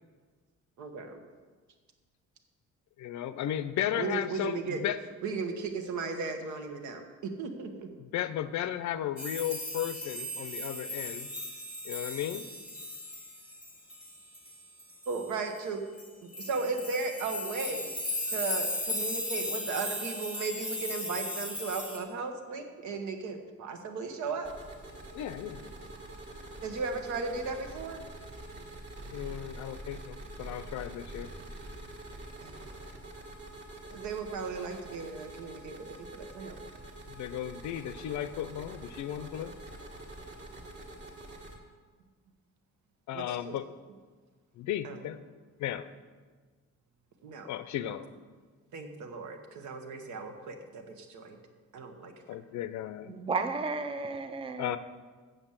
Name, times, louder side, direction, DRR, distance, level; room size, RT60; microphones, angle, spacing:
voice 1, 0.8-1.2 3.9-4.9 5.2-7.9 15.1-15.8 16.2-17.9 18.2-24.5 26.6-28.0 32.4-32.5 33.9-36.7 43.1-43.6 44.8-45.0 47.2-47.5 47.8-47.9 48.7-51.4 51.7-52.1, right 4 dB, 75° right, 5 dB, 1.3 m, -36 dB
voice 2, 3.0-5.0 8.1-11.3 11.8-12.4 25.1-25.6 29.1-31.3 37.1-39.5 43.1-43.7 44.6-45.2 45.6-45.9 47.5-48.1 52.3-53.1 54.6-54.8, left 11 dB, 70° left, 13 dB, 0.6 m, -35 dB
sound 1, 9.2-15.3 16.0-16.1 16.3-22.0, left 1 dB, 5° right, 1.0 m, -37 dB
sound 2, 24.4-41.6, right 1 dB, 40° right, 1.6 m, -46 dB
voice 3, 53.1-54.8, right 4 dB, 20° right, 9 dB, 0.5 m, -33 dB
8.1 x 7.0 x 7.3 m, 1.4 s
cardioid pair, 175°, 29 cm